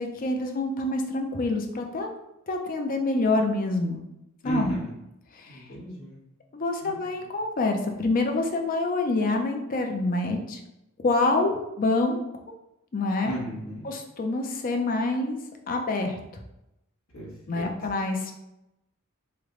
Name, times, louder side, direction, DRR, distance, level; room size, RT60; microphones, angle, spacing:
voice 1, 0.0-2.1 2.5-4.0 4.4-4.8 5.4-5.6 6.5-10.6 11.0-12.2 12.9-13.3 13.8-15.4 15.7-16.2 17.5-18.3, left 2 dB, 40° left, 3 dB, 0.4 m, -26 dB
voice 2, 4.4-4.9 5.5-6.2 6.8-7.0 13.2-13.9 17.1-17.7, equal, 65° left, -5 dB, 1.1 m, -36 dB
3.2 x 2.1 x 3.7 m, 0.89 s
head